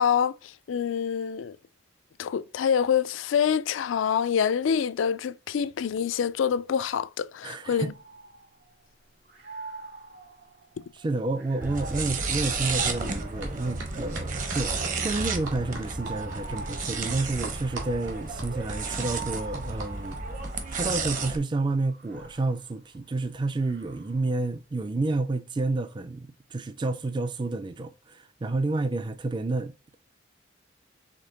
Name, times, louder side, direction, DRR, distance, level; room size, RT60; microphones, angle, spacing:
voice 1, 0.0-1.6 2.2-7.9 10.8-10.9, left 7 dB, 85° left, 0.3 m, -26 dB
voice 2, 7.4-7.9 10.9-20.2 20.7-29.7, right 2 dB, 25° right, 0.3 m, -30 dB
sound 1, 7.7-8.9 9.3-13.6 14.3-21.0 21.8-24.4, right 4 dB, 65° right, 1.9 m, -45 dB
sound 2, 11.6-21.4, right 4 dB, 40° right, 0.8 m, -32 dB
sound 3, 13.4-13.5 13.8-20.5, right 2 dB, 85° right, 1.8 m, -40 dB
5.1 x 3.7 x 2.7 m
head